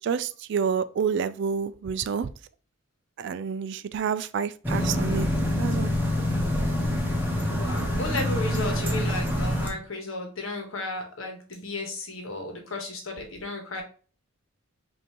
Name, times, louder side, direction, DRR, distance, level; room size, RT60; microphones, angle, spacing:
voice 1, 0.0-2.3 3.2-5.3 5.6-5.9, right 6 dB, 55° right, 0.3 m, -28 dB
sound 1, 4.6-9.7, left 1 dB, 10° right, 0.9 m, -26 dB
voice 2, 7.5-13.8, left 2 dB, 75° left, 1.2 m, -34 dB
5.2 x 2.7 x 2.9 m
head